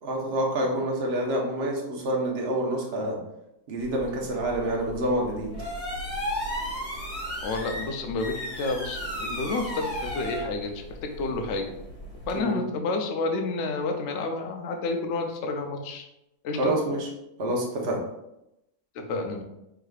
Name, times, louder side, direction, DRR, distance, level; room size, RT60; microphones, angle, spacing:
voice 1, 0.0-3.2 3.7-5.5 12.3-12.6 16.6-17.1 17.4-18.0, right 1 dB, 45° right, -1 dB, 0.9 m, -27 dB
sound 1, 3.8-12.4, equal, 40° left, 1.8 m, -35 dB
voice 2, 7.4-11.7 12.2-16.1 16.4-16.7 18.9-19.4, left 3 dB, 75° left, 4 dB, 0.6 m, -30 dB
4.8 x 3.7 x 2.3 m, 0.87 s
omnidirectional pair, 1.9 m